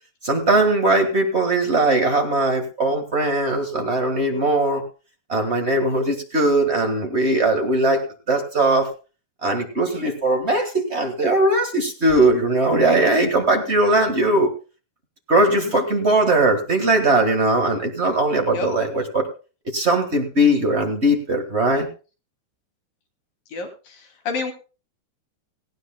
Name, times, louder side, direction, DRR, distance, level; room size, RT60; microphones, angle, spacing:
voice 1, 0.2-4.8 5.3-8.9 9.4-14.5 15.3-19.3 19.7-21.9, right 2 dB, 40° right, 4 dB, 1.0 m, -19 dB
voice 2, 15.5-15.9 18.5-18.7 23.5-24.5, left 4 dB, 85° left, 4 dB, 4.4 m, -30 dB
18.0 x 16.0 x 2.2 m, 0.34 s
omnidirectional pair, 3.8 m